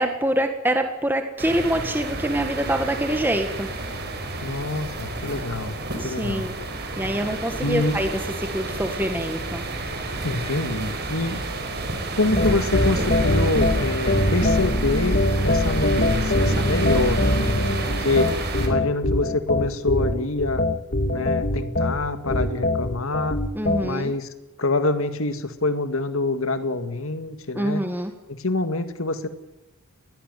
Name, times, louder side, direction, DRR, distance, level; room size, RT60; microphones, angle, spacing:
voice 1, 0.0-3.7 6.0-6.5 7.0-8.1 8.5-9.6 23.5-24.1 27.5-28.1, right 1 dB, 10° right, 6 dB, 1.6 m, -25 dB
sound 1, 1.4-18.7, right 2 dB, 50° right, 4.7 m, -30 dB
voice 2, 4.4-5.8 6.0-6.5 7.6-8.0 10.2-11.4 12.2-17.6 18.0-18.3 18.6-20.6 21.1-23.4 23.8-24.3 24.6-27.8 28.3-29.3, left 2 dB, 65° left, 9 dB, 2.1 m, -26 dB
sound 2, 12.3-23.9, left 1 dB, 45° left, 1.8 m, -23 dB
21.0 x 17.5 x 9.3 m, 1.0 s
head